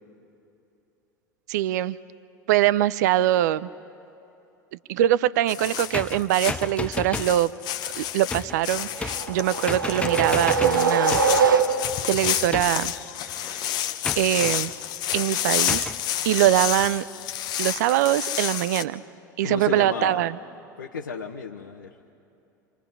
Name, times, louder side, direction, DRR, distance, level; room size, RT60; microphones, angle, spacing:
voice 1, 1.5-2.0 2.5-3.7 4.9-7.5 8.0-11.2 12.1-12.9 13.4-13.8 14.2-14.7 15.1-15.9 16.2-17.0 17.6-19.0 19.4-20.4, right 13 dB, 60° right, 18 dB, 0.5 m, -23 dB
sound 1, 5.5-18.8, left 11 dB, 40° left, 1.0 m, -30 dB
sound 2, 5.9-7.4 8.3-8.6 9.0-9.4 9.7-11.5 12.5-13.0 14.0-14.6 15.7-16.0, left 3 dB, 10° left, 0.5 m, -32 dB
sound 3, 9.0-12.1, right 5 dB, 80° right, 1.2 m, -22 dB
voice 2, 19.4-20.3 20.8-21.9, left 6 dB, 75° left, 1 dB, 1.1 m, -32 dB
29.5 x 26.5 x 5.5 m, 2.8 s
figure-of-eight pair, 80°, 11 cm